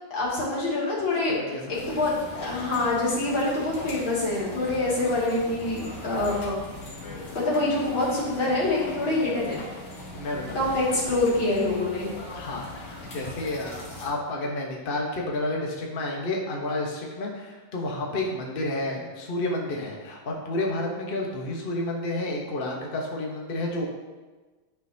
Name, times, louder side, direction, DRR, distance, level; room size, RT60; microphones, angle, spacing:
voice 1, 0.1-1.3 1.7-6.6 7.3-9.6 10.5-12.1, left 2 dB, 80° left, -7 dB, 3.1 m, -25 dB
voice 2, 1.3-2.0 10.1-11.0 12.3-23.9, left 2 dB, 35° left, -1 dB, 1.0 m, -31 dB
sound 1, 1.7-14.1, left 2 dB, 60° left, 2.0 m, -40 dB
10.5 x 5.9 x 2.8 m, 1.3 s
omnidirectional pair, 2.2 m